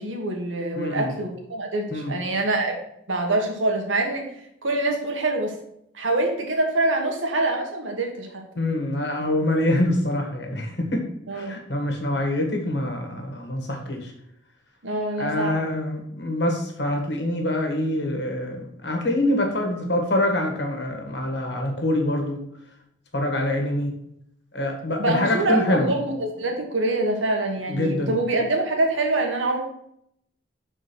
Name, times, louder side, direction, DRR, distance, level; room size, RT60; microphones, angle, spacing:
voice 1, 0.0-2.8 3.1-4.3 4.6-5.6 5.9-8.4 11.3-11.5 14.8-15.6 25.0-29.6, right 2 dB, 85° right, 2 dB, 1.7 m, -25 dB
voice 2, 0.7-1.1 1.9-2.2 8.6-11.0 11.3-14.1 15.2-22.4 23.1-23.9 24.5-25.9 27.7-28.2, left 1 dB, 60° left, 2 dB, 1.7 m, -25 dB
6.2 x 4.5 x 6.1 m, 0.74 s
head